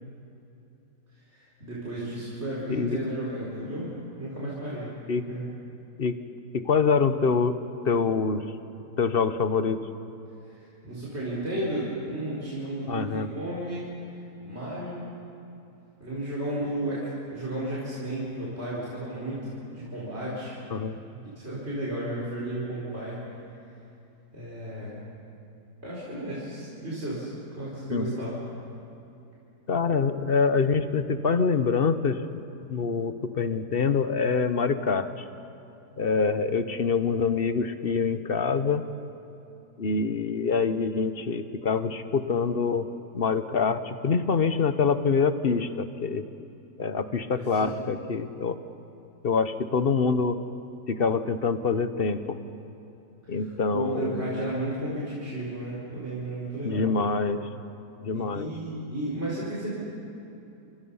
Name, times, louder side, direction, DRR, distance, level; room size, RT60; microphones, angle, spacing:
voice 1, 1.1-3.9 4.2-5.0 5.3-5.4 10.5-13.9 14.4-15.0 16.0-20.6 21.4-23.2 24.3-25.0 25.8-28.4 47.4-47.9 53.2-56.9 58.1-59.7, right 1 dB, 40° right, -8 dB, 4.9 m, -33 dB
voice 2, 2.7-3.0 5.1-5.2 6.0-6.2 6.5-7.6 7.8-8.4 9.0-9.8 12.9-13.3 20.7-21.0 27.9-28.2 29.7-32.4 32.7-35.2 36.0-38.8 39.8-42.9 43.1-46.3 46.8-48.6 49.2-50.4 50.9-52.4 53.3-54.5 56.6-57.4 58.0-58.5, left 5 dB, 40° left, 10 dB, 0.9 m, -25 dB
30.0 x 26.0 x 5.6 m, 2.8 s
omnidirectional pair, 1.8 m